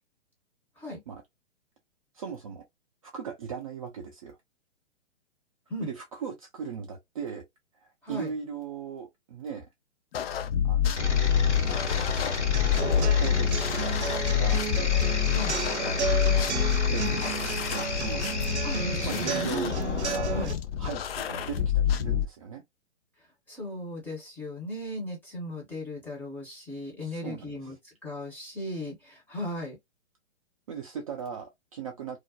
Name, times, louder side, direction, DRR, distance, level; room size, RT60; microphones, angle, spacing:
voice 1, 2.1-2.6 3.0-4.4 5.8-7.4 7.7-9.7 10.6-11.3 13.1-14.7 15.9-16.4 16.9-18.3 19.0-19.8 20.1-20.5 20.8-22.6 27.0-27.7 30.7-32.2, right 6 dB, 35° right, 0.4 m, -38 dB
sound 1, 10.1-22.2, left 9 dB, 60° left, 0.4 m, -27 dB
sound 2, 11.0-20.5, left 3 dB, 80° left, 1.0 m, -32 dB
sound 3, 12.5-20.5, right 6 dB, 75° right, 0.6 m, -34 dB
voice 2, 15.3-15.6 18.6-19.7 20.3-20.5 23.5-29.8, left 1 dB, 5° left, 0.6 m, -37 dB
2.4 x 2.0 x 2.6 m
figure-of-eight pair, 125°, 34 cm